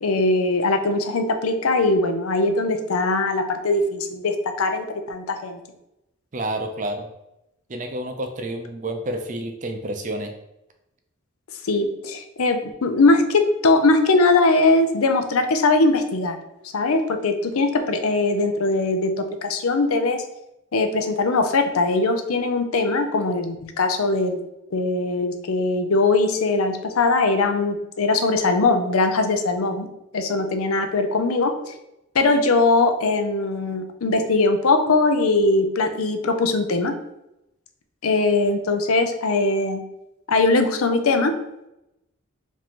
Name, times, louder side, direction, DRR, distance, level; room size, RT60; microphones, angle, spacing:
voice 1, 0.0-5.6 11.7-16.4 16.7-19.1 19.4-20.2 20.7-24.4 24.7-29.9 30.1-31.7 32.1-36.9 38.0-39.8 40.3-41.3, left 3 dB, 85° left, 7 dB, 0.6 m, -21 dB
voice 2, 6.3-7.1 7.7-10.3, right 1 dB, 35° right, 5 dB, 0.5 m, -29 dB
5.0 x 2.7 x 3.6 m, 0.87 s
head